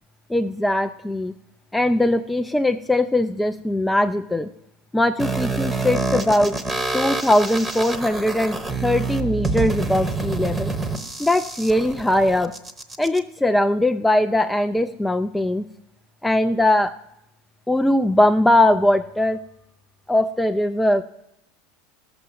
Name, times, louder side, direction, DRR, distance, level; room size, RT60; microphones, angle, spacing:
voice 1, 0.3-1.3 1.7-4.5 4.9-6.6 6.9-10.7 11.2-12.5 13.0-15.6 16.2-16.9 17.7-19.4 20.1-21.0, left 1 dB, 5° left, 7 dB, 0.3 m, -20 dB
sound 1, 5.2-13.2, right 3 dB, 10° right, 0.9 m, -27 dB
12.0 x 6.9 x 7.7 m, 0.84 s
supercardioid pair, 150°, 0 cm